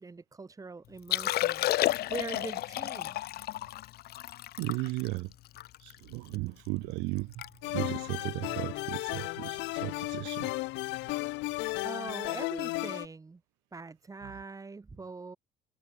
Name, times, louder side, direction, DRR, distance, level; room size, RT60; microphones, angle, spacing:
voice 1, 0.0-1.7 2.1-3.2 11.8-13.4 13.7-15.4, right 4 dB, 20° right, 6.8 m, -42 dB
Liquid, 1.0-6.4 6.8-6.9 7.2-7.5 7.7-8.0 8.6-8.8 10.3-10.4, left 15 dB, 60° left, 1.2 m, -32 dB
voice 2, 4.6-5.3 5.8-7.5 7.7-10.5, right 24 dB, 85° right, 2.2 m, -35 dB
sound 1, 7.6-13.1, left 21 dB, 80° left, 2.9 m, -34 dB
cardioid pair, 120°, 18 cm